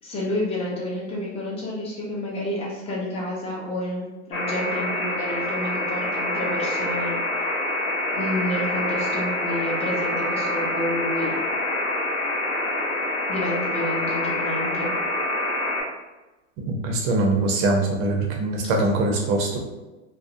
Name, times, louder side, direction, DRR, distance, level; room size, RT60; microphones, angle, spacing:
voice 1, 0.0-7.1 8.1-11.4 13.3-14.9, left 1 dB, 15° left, -4 dB, 0.6 m, -29 dB
sound 1, 4.3-15.8, left 2 dB, 35° left, 1.0 m, -26 dB
voice 2, 16.7-19.6, right 2 dB, 35° right, 1 dB, 0.5 m, -22 dB
2.5 x 2.0 x 2.5 m, 1.1 s
hypercardioid pair, 120°, 39 cm